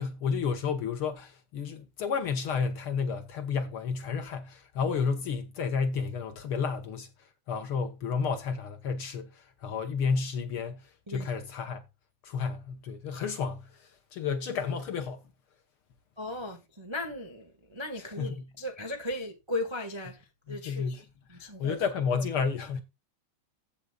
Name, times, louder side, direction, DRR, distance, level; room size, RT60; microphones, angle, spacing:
voice 1, 0.0-11.8 12.2-15.2 18.2-18.3 20.5-21.0 21.3-22.8, left 5 dB, 60° left, 1.5 m, -31 dB
voice 2, 16.2-21.8, left 1 dB, 50° right, 0.3 m, -37 dB
16.0 x 6.6 x 2.3 m
omnidirectional pair, 3.4 m